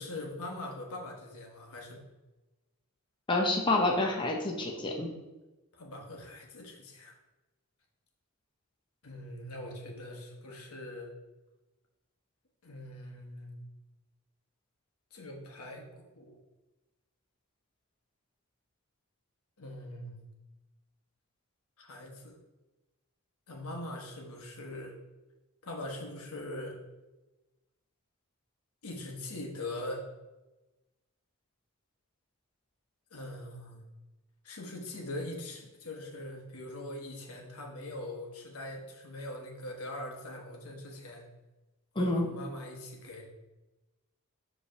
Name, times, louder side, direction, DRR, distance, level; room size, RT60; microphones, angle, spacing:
voice 1, 0.0-2.0 5.7-7.1 9.0-11.1 12.6-13.5 15.1-16.4 19.6-20.1 21.8-22.4 23.5-25.0 25.6-26.8 28.8-30.0 33.1-33.8 34.4-41.2 41.9-43.2, left 1 dB, 75° left, 0 dB, 1.2 m, -42 dB
voice 2, 3.3-5.1 42.0-42.3, left 2 dB, 20° left, 0 dB, 0.7 m, -28 dB
5.3 x 3.3 x 5.6 m, 1.1 s
head